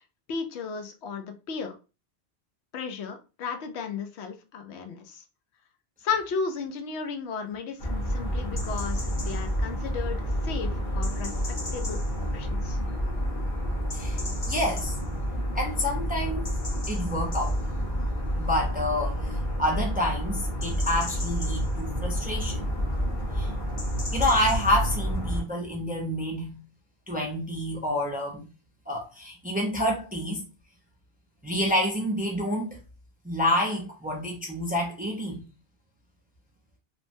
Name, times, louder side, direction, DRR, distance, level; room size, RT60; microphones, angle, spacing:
voice 1, 0.3-1.7 2.7-5.2 6.0-11.3 11.7-12.0 12.3-12.8, left 5 dB, 90° left, 0.9 m, -34 dB
sound 1, 7.8-25.4, equal, 50° left, 0.9 m, -29 dB
voice 2, 14.5-14.9 15.5-16.5 16.9-17.6 18.4-22.7 23.3-23.5 24.1-26.6 27.1-28.5 28.9-30.4 31.4-32.8 33.2-35.4, left 1 dB, 10° right, 0.4 m, -28 dB
3.1 x 2.1 x 2.6 m
omnidirectional pair, 1.1 m